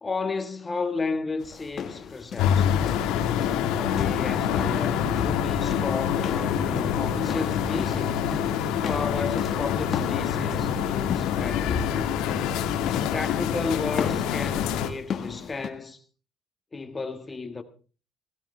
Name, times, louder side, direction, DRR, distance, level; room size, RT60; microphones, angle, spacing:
voice 1, 0.0-2.9 3.7-8.2 8.8-12.2 13.1-16.0 16.7-17.6, left 4 dB, 20° left, 1.6 m, -33 dB
Walking Up Stairs, 1.4-15.7, left 7 dB, 45° left, 1.5 m, -36 dB
sound 1, 2.4-14.9, left 9 dB, 80° left, 1.7 m, -26 dB
sound 2, 6.3-13.1, right 1 dB, 20° right, 6.8 m, -43 dB
17.0 x 16.0 x 3.3 m
cardioid pair, 125°, 0 cm